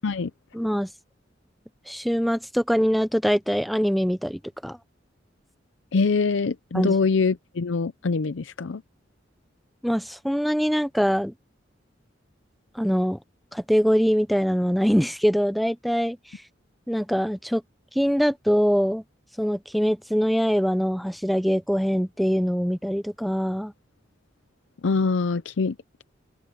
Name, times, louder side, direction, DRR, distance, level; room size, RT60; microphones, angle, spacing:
voice 1, 0.5-0.9 1.9-4.8 6.7-7.0 9.8-11.3 12.8-13.2 13.5-16.2 16.9-17.6 18.0-19.0 19.4-23.7, equal, ahead, 0.6 m, -23 dB
voice 2, 5.9-8.8 24.8-25.7, left 4 dB, 85° left, 0.6 m, -24 dB
head